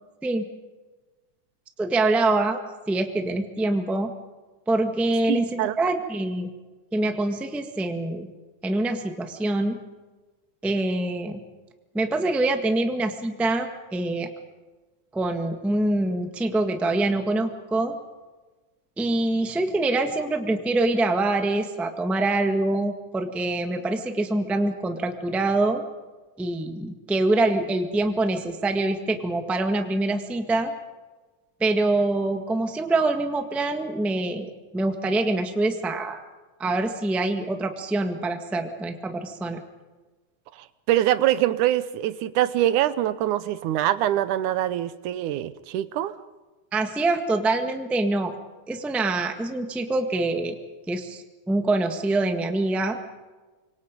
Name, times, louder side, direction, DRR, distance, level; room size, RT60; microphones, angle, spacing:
voice 1, 1.8-2.6 2.9-4.1 4.7-6.5 6.9-8.3 8.6-9.8 10.6-11.4 11.9-14.3 15.1-17.9 19.0-25.8 26.4-30.7 31.6-36.2 36.6-39.6 46.7-48.4 48.7-50.6 50.9-53.0, right 2 dB, ahead, 5 dB, 0.8 m, -25 dB
voice 2, 5.3-5.8 40.6-46.2, right 13 dB, 90° right, 14 dB, 2.4 m, -24 dB
26.0 x 24.0 x 5.3 m, 1.2 s
omnidirectional pair, 3.4 m